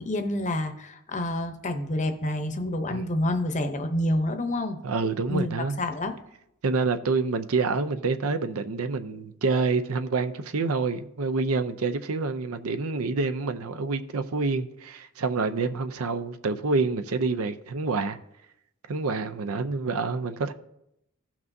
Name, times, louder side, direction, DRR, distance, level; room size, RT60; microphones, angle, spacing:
voice 1, 0.0-4.8 5.3-6.2, left 1 dB, 35° left, 0.8 m, -28 dB
voice 2, 4.8-5.8 6.6-18.2 18.9-20.5, right 4 dB, 75° right, 0.5 m, -27 dB
16.0 x 6.0 x 2.7 m
head